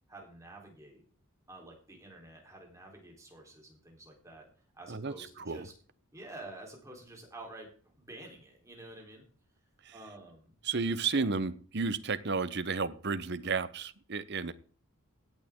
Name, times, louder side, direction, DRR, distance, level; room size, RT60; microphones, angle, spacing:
voice 1, 0.1-1.0 1.5-4.5 4.7-5.7 6.1-9.3 9.9-10.6 11.1-11.3, right 2 dB, 15° right, 0 dB, 3.8 m, -49 dB
voice 2, 4.9-5.7 9.8-9.9 10.6-14.5, right 4 dB, 50° right, 13 dB, 0.9 m, -32 dB
16.5 x 8.6 x 3.7 m, 0.43 s
head